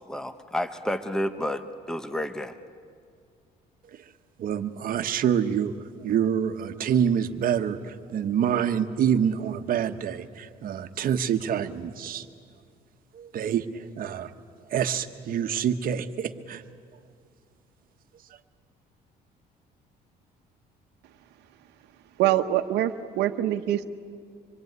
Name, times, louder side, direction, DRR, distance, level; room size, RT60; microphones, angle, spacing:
voice 1, 0.1-2.6, left 1 dB, 5° left, 10 dB, 1.0 m, -30 dB
voice 2, 4.4-5.7 6.0-12.3 13.1-14.3 14.7-16.6, right 8 dB, 55° right, 8 dB, 1.3 m, -26 dB
voice 3, 22.2-23.9, right 13 dB, 80° right, 6 dB, 1.1 m, -24 dB
26.0 x 23.5 x 9.6 m, 2.2 s
cardioid pair, 110°, 17 cm